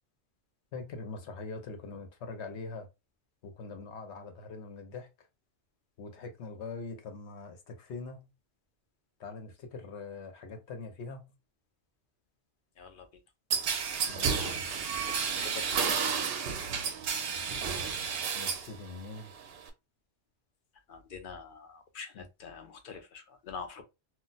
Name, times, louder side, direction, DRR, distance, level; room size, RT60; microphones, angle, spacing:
voice 1, 0.7-2.9 3.4-5.1 6.0-8.3 9.2-11.3 14.1-14.7 18.3-19.3 22.1-22.3, left 4 dB, 75° left, 1.0 m, -43 dB
sound 1, 13.5-18.7 19.1-19.7, right 6 dB, 65° right, 0.8 m, -31 dB
voice 2, 15.0-16.3 20.9-22.1 22.4-23.8, left 5 dB, 55° left, 0.8 m, -45 dB
2.4 x 2.1 x 3.9 m
omnidirectional pair, 1.2 m